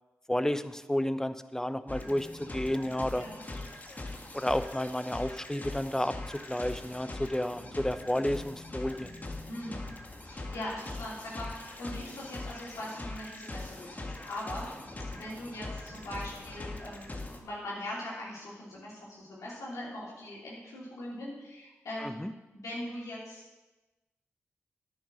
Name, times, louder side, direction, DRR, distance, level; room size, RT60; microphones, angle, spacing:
voice 1, 0.3-3.3 4.3-9.1 22.0-22.3, left 1 dB, 10° left, 12 dB, 0.7 m, -31 dB
sound 1, 1.9-17.4, left 2 dB, 30° left, 1.5 m, -42 dB
voice 2, 9.5-9.9 10.2-14.7 15.1-22.1 22.5-23.4, left 1 dB, 80° left, -6 dB, 3.1 m, -41 dB
9.8 x 6.4 x 6.2 m, 1.1 s
supercardioid pair, 40°, 5 cm